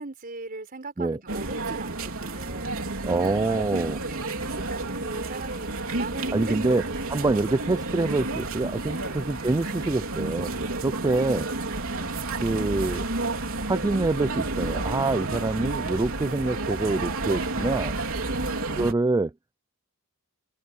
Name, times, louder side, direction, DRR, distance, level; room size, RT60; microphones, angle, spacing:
voice 1, 0.0-2.8 3.5-3.6 4.1-4.3 4.6-7.4 9.0-9.2 11.0-11.3 18.2-18.9, right 3 dB, 40° right, 4.5 m, -39 dB
sound 1, 1.3-18.9, right 2 dB, 65° right, 4.1 m, -31 dB
voice 2, 3.0-4.0 6.3-6.8 7.1-11.5 12.4-13.0 13.7-18.0 18.8-19.3, right 2 dB, 15° right, 0.3 m, -26 dB
sound 2, 3.5-12.8, left 1 dB, 65° left, 6.2 m, -52 dB
sound 3, 11.7-18.5, right 1 dB, 85° right, 4.5 m, -42 dB
head